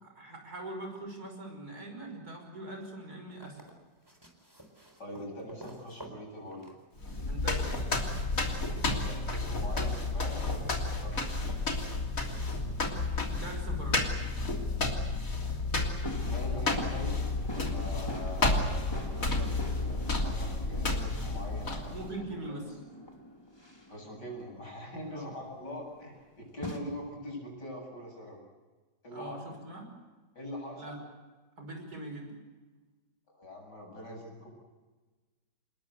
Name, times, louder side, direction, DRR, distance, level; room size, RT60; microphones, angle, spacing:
voice 1, 0.0-3.6 7.3-8.1 13.3-14.3 21.9-22.8 25.1-25.3 29.1-29.9 30.8-31.0 31.6-32.4, right 1 dB, 60° right, 3 dB, 6.3 m, -42 dB
sound 1, 3.3-7.4 8.7-8.8, right 1 dB, 15° right, 4.1 m, -52 dB
voice 2, 5.0-6.7 8.7-11.6 16.2-17.2 17.5-21.9 22.5-22.6 23.9-28.4 29.0-29.4 30.4-30.8 33.3-34.5, left 1 dB, 80° left, 0 dB, 8.8 m, -43 dB
sound 2, 7.0-22.1, left 2 dB, 50° left, 3.6 m, -31 dB
sound 3, 7.1-10.6 10.9-11.7 14.6-14.7 16.0-26.8, left 1 dB, 15° left, 3.1 m, -45 dB
28.5 x 20.5 x 8.1 m, 1.3 s
omnidirectional pair, 1.8 m